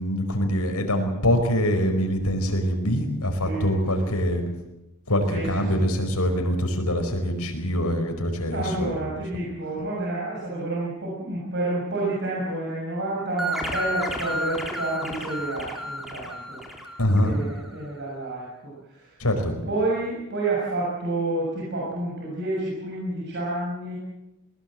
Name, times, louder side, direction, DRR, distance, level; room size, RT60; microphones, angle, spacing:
voice 1, 0.0-4.4 5.1-9.4 17.0-17.4 19.2-19.5, equal, 90° left, 5 dB, 4.9 m, -24 dB
voice 2, 5.3-5.9 8.5-16.6 17.0-19.3 19.6-24.0, right 2 dB, 55° right, -5 dB, 6.7 m, -29 dB
sound 1, 13.4-17.7, equal, ahead, 3.7 m, -32 dB
21.5 x 19.5 x 7.7 m, 0.91 s
head